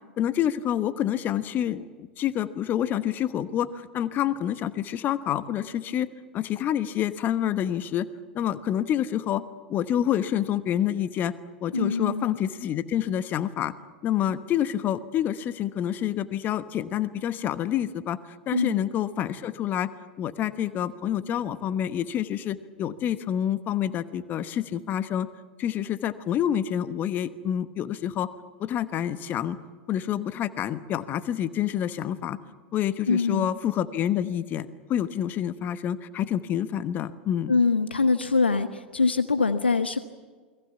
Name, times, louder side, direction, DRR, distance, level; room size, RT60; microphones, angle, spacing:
voice 1, 0.2-6.1 6.3-8.1 8.3-9.4 9.7-11.3 11.6-13.7 14.0-18.2 18.5-19.9 20.2-25.3 25.6-28.3 28.6-29.6 29.9-32.4 32.7-37.5, left 10 dB, 35° left, 13 dB, 1.1 m, -27 dB
voice 2, 11.7-12.4 18.5-18.8 33.1-33.5 37.5-40.0, left 4 dB, 80° left, 10 dB, 1.1 m, -24 dB
28.5 x 22.0 x 7.2 m, 1.5 s
figure-of-eight pair, 85°, 6 cm